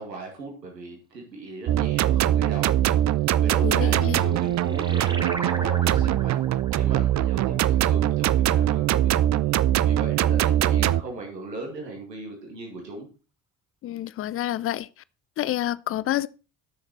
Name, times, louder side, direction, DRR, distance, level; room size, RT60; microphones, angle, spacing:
voice 1, 0.0-3.0 3.4-6.4 6.7-9.5 9.8-13.1, right 2 dB, 85° right, 2.1 m, -38 dB
sound 1, 1.7-11.0, right 12 dB, 35° right, 0.5 m, -22 dB
voice 2, 3.6-4.2 13.8-14.9 15.4-16.3, left 13 dB, 30° left, 0.4 m, -28 dB
sound 2, 3.9-8.9, right 2 dB, 10° right, 1.0 m, -38 dB
12.0 x 6.5 x 4.4 m
figure-of-eight pair, 45°, 49 cm